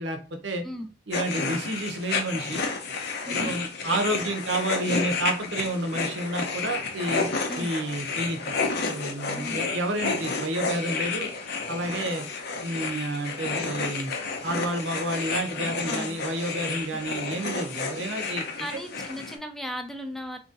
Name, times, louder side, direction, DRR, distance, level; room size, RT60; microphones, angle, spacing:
voice 1, 0.0-0.6 1.1-2.6 3.3-8.5 8.8-11.3 11.7-12.3 12.6-14.1 14.4-18.8, right 1 dB, 80° right, 5 dB, 0.8 m, -30 dB
sound 1, 1.1-19.4, left 4 dB, 60° left, 0.7 m, -31 dB
voice 2, 3.3-3.6 7.5-7.7 9.3-9.6 15.8-16.2 18.6-20.4, equal, ahead, 6 dB, 0.4 m, -36 dB
2.9 x 2.7 x 3.8 m, 0.36 s
head